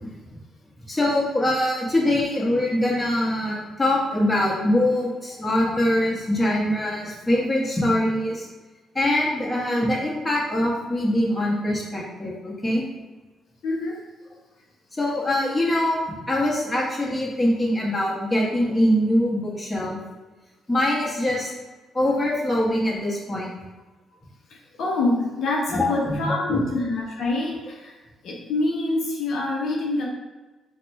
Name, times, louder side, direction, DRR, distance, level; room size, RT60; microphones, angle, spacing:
voice 1, 0.9-8.5 8.9-12.8 15.0-20.0 20.7-21.5 21.9-23.5 25.7-26.6, left 1 dB, 15° left, -4 dB, 1.1 m, -23 dB
voice 2, 13.6-14.0 24.5-28.0 28.2-30.0, left 2 dB, 70° left, -2 dB, 0.7 m, -26 dB
4.1 x 2.2 x 4.1 m, 1.2 s
cardioid pair, 90°, 0 cm